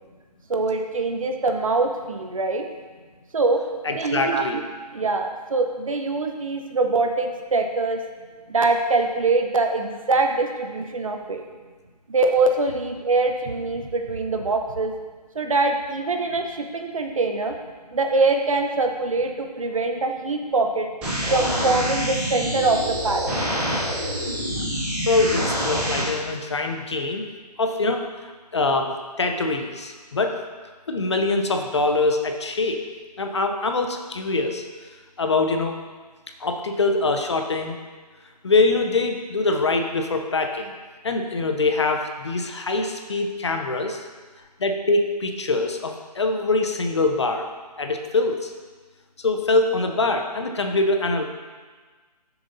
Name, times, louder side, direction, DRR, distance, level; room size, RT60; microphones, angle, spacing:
voice 1, 0.5-2.7 3.3-3.6 3.9-4.4 4.9-8.0 8.5-11.4 12.1-14.9 15.3-17.6 17.9-20.9 21.3-23.4, right 3 dB, 50° right, 5 dB, 0.9 m, -23 dB
voice 2, 3.8-4.7 25.1-27.2 27.6-28.0 28.5-30.3 30.9-32.8 33.2-34.6 35.2-35.7 36.4-37.8 38.4-40.7 41.0-44.0 44.6-47.5 47.8-48.5 49.2-51.2, left 3 dB, 40° left, 4 dB, 0.7 m, -23 dB
sound 1, 21.0-26.0, equal, 5° right, 0.7 m, -26 dB
11.0 x 6.9 x 2.7 m, 1.4 s
figure-of-eight pair, 165°, 21 cm